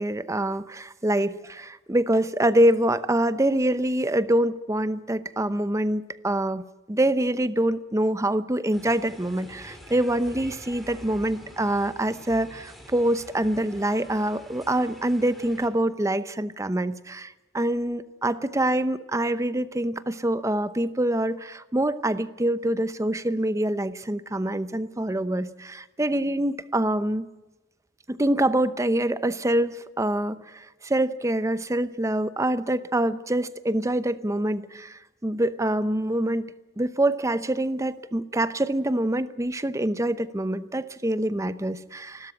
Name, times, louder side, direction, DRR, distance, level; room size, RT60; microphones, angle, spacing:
voice 1, 0.0-6.6 6.9-27.3 28.1-36.5 36.8-42.3, right 1 dB, 15° right, 14 dB, 0.8 m, -25 dB
sound 1, 8.7-15.7, equal, ahead, 3.5 m, -46 dB
28.5 x 13.0 x 8.5 m, 1.1 s
head